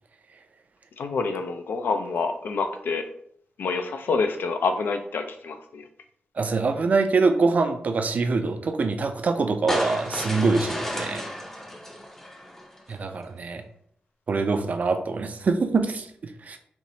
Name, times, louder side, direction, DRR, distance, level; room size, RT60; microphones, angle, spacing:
voice 1, 1.0-3.0 3.6-5.9, left 4 dB, 80° left, 7 dB, 0.4 m, -27 dB
voice 2, 6.4-11.2 12.9-13.6 14.3-16.6, right 4 dB, 50° right, 7 dB, 0.4 m, -24 dB
sound 1, 9.7-12.9, equal, 10° left, 0.5 m, -32 dB
4.4 x 2.9 x 2.7 m, 0.66 s
wide cardioid pair, 145°, 3 cm